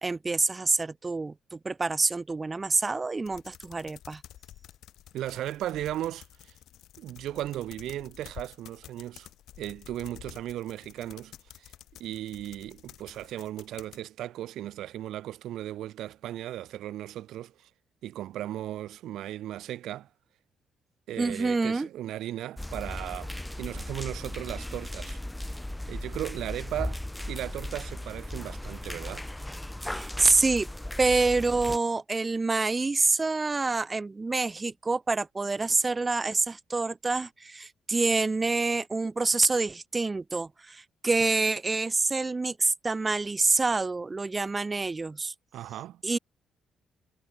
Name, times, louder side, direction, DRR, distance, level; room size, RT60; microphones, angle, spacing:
voice 1, 0.0-4.2 21.2-21.9 29.8-30.7 31.0-45.3 46.0-46.2, right 3 dB, 25° right, 0.3 m, -27 dB
sound 1, 3.2-14.0, left 12 dB, 80° left, 7.2 m, -50 dB
voice 2, 5.1-6.5 7.0-9.3 9.6-11.7 12.0-17.7 18.0-20.1 21.1-25.2 25.9-27.0 27.3-29.3 45.5-46.0, right 13 dB, 80° right, 1.8 m, -36 dB
sound 2, 22.6-31.8, left 1 dB, 5° left, 1.6 m, -37 dB
cardioid pair, 90°, 0 cm